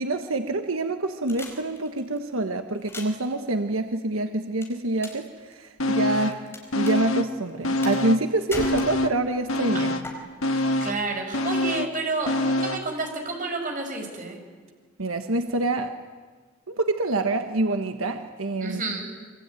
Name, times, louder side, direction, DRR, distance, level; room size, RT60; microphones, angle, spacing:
voice 1, 0.0-9.9 15.0-15.9 16.7-18.8, right 2 dB, 85° right, 7 dB, 1.3 m, -26 dB
sound 1, 1.3-2.2 2.8-3.3 4.6-5.3 5.5-6.6 6.9-7.0 7.8-8.2 8.5-9.3 10.0-10.1, left 1 dB, 10° left, 5.0 m, -37 dB
sound 2, 5.8-6.5 6.7-8.3 8.6-12.9 13.3-13.4, left 1 dB, 90° left, 1.6 m, -26 dB
voice 2, 9.7-10.1 10.5-14.4 18.6-19.0, right 3 dB, 40° right, 3 dB, 5.8 m, -30 dB
26.0 x 24.5 x 9.1 m, 1.5 s
head